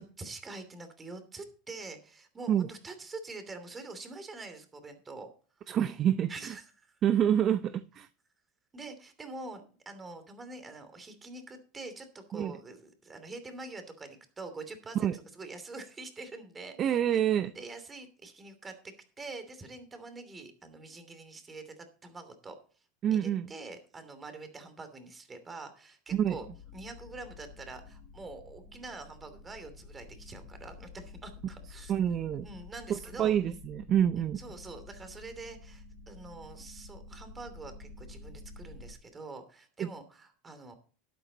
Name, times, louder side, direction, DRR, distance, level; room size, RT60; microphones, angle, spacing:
voice 1, 0.0-5.3 6.3-7.0 8.7-17.2 17.5-22.6 23.1-26.5 26.7-31.9 32.4-33.3 34.4-40.7, right 3 dB, 20° right, 2.9 m, -45 dB
voice 2, 5.7-6.6 7.0-8.1 12.3-12.6 14.9-15.2 16.8-17.5 23.0-23.5 26.1-26.4 31.9-32.5 32.9-34.4 39.8-39.9, right 10 dB, 40° right, 0.6 m, -27 dB
sound 1, 26.1-38.9, left 4 dB, 85° left, 3.1 m, -50 dB
12.0 x 9.0 x 4.0 m
hypercardioid pair, 105°, 0 cm